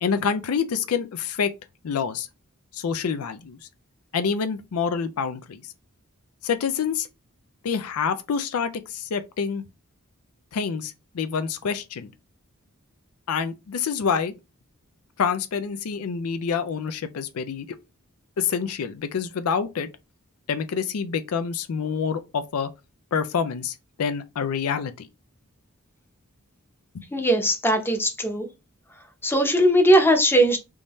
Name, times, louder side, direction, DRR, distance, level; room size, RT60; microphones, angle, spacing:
voice 1, 0.0-1.5 1.8-2.3 2.7-3.6 4.1-5.6 6.4-7.1 7.6-9.6 10.5-12.1 13.3-14.3 15.2-17.8 18.4-19.9 20.5-22.7 23.1-25.1 26.9-27.0, left 6 dB, 85° left, 0.4 m, -27 dB
voice 2, 27.1-28.5 29.2-30.6, right 1 dB, 10° left, 0.7 m, -19 dB
3.6 x 2.6 x 3.0 m
head